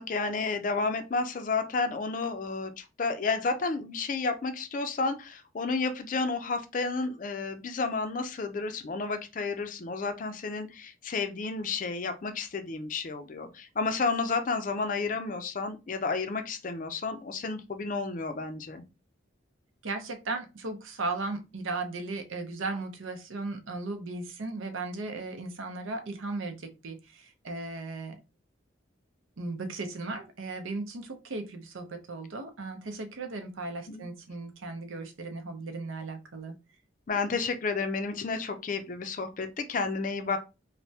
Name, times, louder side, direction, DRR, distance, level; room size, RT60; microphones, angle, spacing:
voice 1, 0.0-18.8 33.9-34.1 37.1-40.4, left 4 dB, 40° left, 8 dB, 0.4 m, -31 dB
voice 2, 19.8-28.2 29.4-36.5, right 3 dB, 90° right, 6 dB, 0.6 m, -36 dB
3.2 x 2.1 x 2.7 m, 0.27 s
head